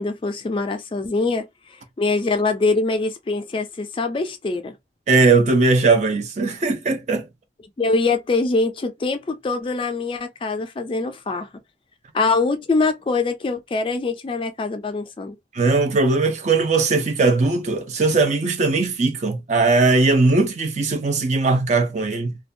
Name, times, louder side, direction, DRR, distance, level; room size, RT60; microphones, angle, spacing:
voice 1, 0.0-1.4 1.7-4.7 7.8-11.5 12.1-15.4, left 3 dB, 30° left, 0.3 m, -23 dB
voice 2, 5.1-7.3 15.5-22.4, right 3 dB, 40° right, 0.5 m, -19 dB
2.5 x 2.2 x 2.5 m
head